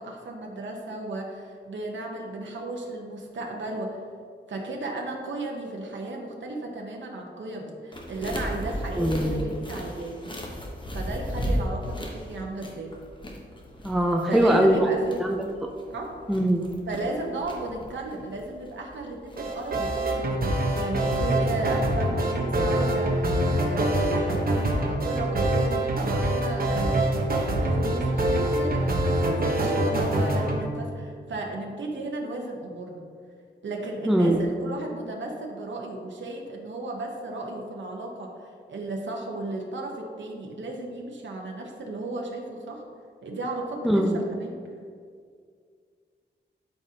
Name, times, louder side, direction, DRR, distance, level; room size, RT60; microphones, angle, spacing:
voice 1, 0.0-4.0 4.5-10.2 10.9-12.9 14.3-15.2 15.9-16.2 16.9-27.3 27.6-33.0 33.6-42.8 43.2-44.6, right 2 dB, 80° right, 0 dB, 1.0 m, -34 dB
sound 1, 7.9-20.1, equal, 25° left, 1.1 m, -35 dB
voice 2, 9.0-9.4 13.8-14.9 15.2-15.4 16.3-16.6 34.1-34.4 43.8-44.2, equal, ahead, 1 dB, 0.5 m, -21 dB
sound 2, 19.4-30.6, right 1 dB, 50° right, 1.1 m, -25 dB
12.0 x 5.0 x 2.8 m, 2.1 s
wide cardioid pair, 150°, 19 cm